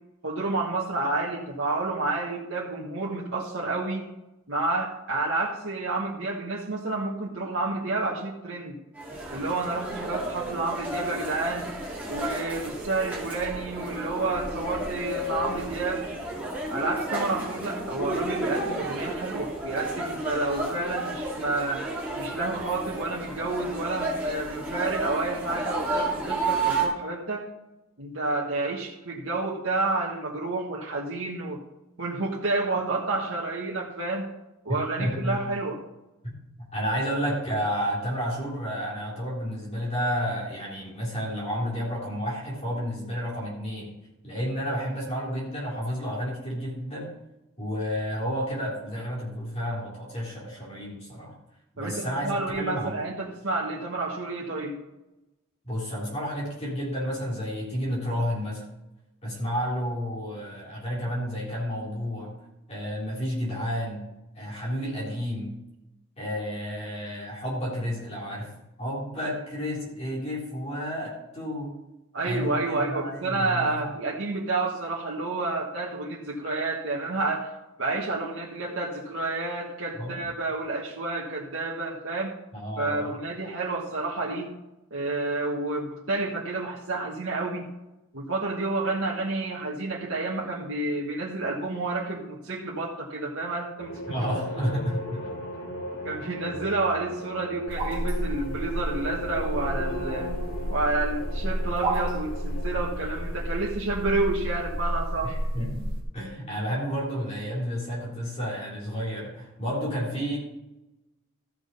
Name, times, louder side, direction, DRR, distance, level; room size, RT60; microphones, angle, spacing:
voice 1, 0.2-4.1 4.5-8.7 9.3-11.7 12.1-16.2 16.7-21.9 22.2-27.4 28.0-31.6 32.0-34.3 34.6-35.8 51.8-54.8 72.1-77.5 77.8-82.3 82.8-84.5 84.9-87.7 88.1-94.1 94.6-94.7 96.0-100.4 100.7-105.4, right 3 dB, 60° right, -4 dB, 1.4 m, -30 dB
sound 1, 9.0-26.9, right 2 dB, 5° right, 2.5 m, -32 dB
voice 2, 35.0-35.4 36.2-43.9 44.2-47.1 47.6-51.3 51.7-52.9 55.6-58.6 59.2-62.4 62.7-64.0 64.4-65.5 66.2-68.5 68.8-71.7 72.2-73.9 80.0-80.3 82.5-83.2 94.1-95.3 105.2-110.4, equal, 30° left, -5 dB, 3.6 m, -31 dB
sound 2, 93.8-103.5, equal, 75° left, 3.4 m, -37 dB
sound 3, 97.7-106.0, right 1 dB, 25° right, 2.6 m, -31 dB
14.0 x 6.3 x 5.4 m, 0.96 s
head